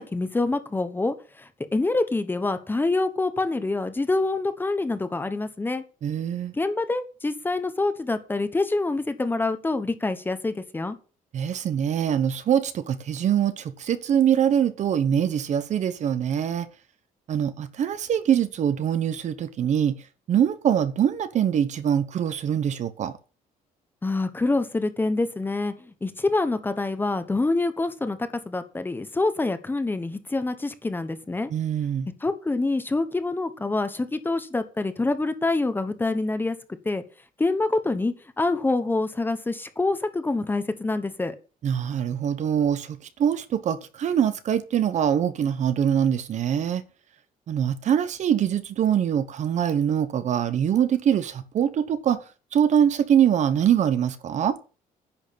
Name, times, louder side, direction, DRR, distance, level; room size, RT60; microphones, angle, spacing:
voice 1, 0.0-5.8 6.5-11.0 24.0-28.2 28.4-31.5 32.2-36.6 36.8-37.0 37.4-41.4, left 2 dB, 15° left, 1.2 m, -26 dB
voice 2, 6.0-6.5 11.3-16.7 17.3-20.0 20.3-23.1 31.5-32.1 41.6-46.8 47.5-52.2 52.5-54.6, right 9 dB, 50° right, 1.1 m, -23 dB
10.5 x 6.4 x 8.6 m
cardioid pair, 160°, 15 cm